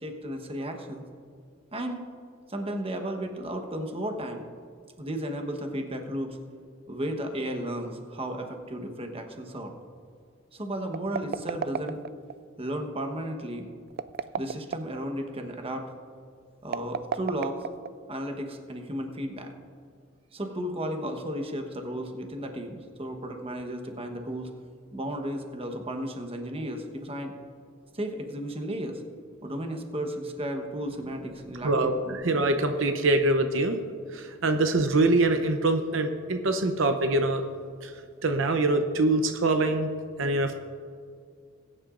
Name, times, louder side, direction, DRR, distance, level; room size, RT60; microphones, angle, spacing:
voice 1, 0.0-1.0 1.7-2.0 2.5-4.4 5.0-6.4 6.9-9.7 10.5-12.0 12.6-13.7 14.4-15.9 16.6-17.7 18.1-19.5 20.3-24.5 24.9-27.3 27.9-29.0 29.4-32.2, right 1 dB, 30° right, 4 dB, 1.1 m, -34 dB
sound 1, 10.9-12.4 13.9-15.0 16.6-18.2, right 7 dB, 50° right, 0.3 m, -33 dB
voice 2, 31.6-32.0 32.2-33.8 34.1-37.4 37.8-37.9 38.2-39.9 40.2-40.5, right 2 dB, 70° right, 6 dB, 0.7 m, -24 dB
20.5 x 10.0 x 2.5 m, 2.2 s
head